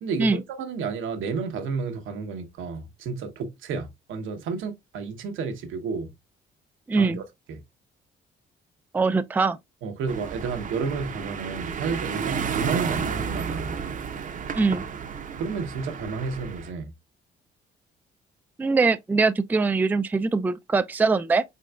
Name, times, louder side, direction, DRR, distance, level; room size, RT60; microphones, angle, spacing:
voice 1, 0.0-6.1 6.9-7.2 7.5-7.6 9.8-13.8 15.3-16.9, right 5 dB, 80° right, 0.9 m, -31 dB
voice 2, 6.9-7.2 8.9-9.6 14.5-14.8 18.6-21.4, right 4 dB, 10° right, 0.3 m, -22 dB
sound 1, 10.1-16.7, right 6 dB, 40° right, 0.6 m, -32 dB
4.1 x 3.8 x 2.2 m
cardioid pair, 90°, 20 cm